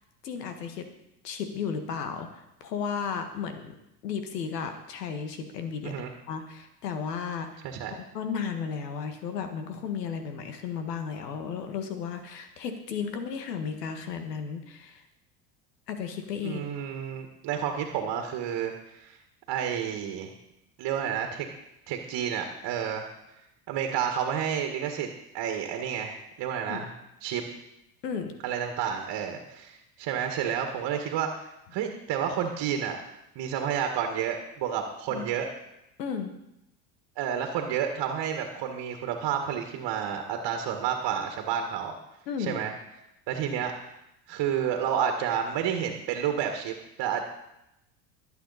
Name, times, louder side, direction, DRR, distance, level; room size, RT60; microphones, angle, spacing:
voice 1, 0.2-0.9 1.2-3.7 4.0-7.6 8.1-15.0 15.9-16.6 26.7-26.8 28.0-28.3 35.1-35.3 36.0-36.3 42.3-42.6, left 6 dB, 85° left, 7 dB, 1.8 m, -34 dB
voice 2, 7.6-8.0 16.4-19.2 19.5-20.3 20.8-21.5 21.9-23.1 23.7-25.1 25.3-26.9 27.2-27.4 28.4-35.5 37.2-41.9 42.4-42.7 43.3-44.0 44.3-47.2, right 8 dB, 55° right, 4 dB, 1.8 m, -30 dB
21.0 x 8.2 x 4.2 m, 0.87 s
hypercardioid pair, 80°, 47 cm